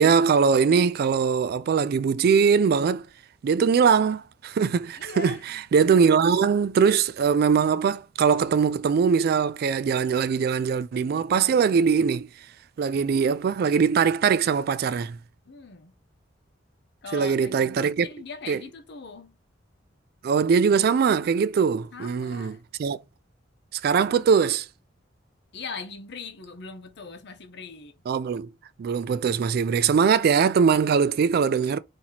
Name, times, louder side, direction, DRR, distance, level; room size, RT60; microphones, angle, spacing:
voice 1, 0.0-3.1 3.4-12.3 12.8-15.2 17.1-18.1 18.5-18.6 20.2-23.0 23.7-24.7 28.1-28.5 28.8-31.8, right 6 dB, 55° right, 0.3 m, -21 dB
voice 2, 5.0-5.4 15.5-15.9 17.0-19.3 21.9-22.6 25.5-28.0, left 4 dB, 60° left, 0.8 m, -40 dB
2.9 x 2.8 x 3.9 m
head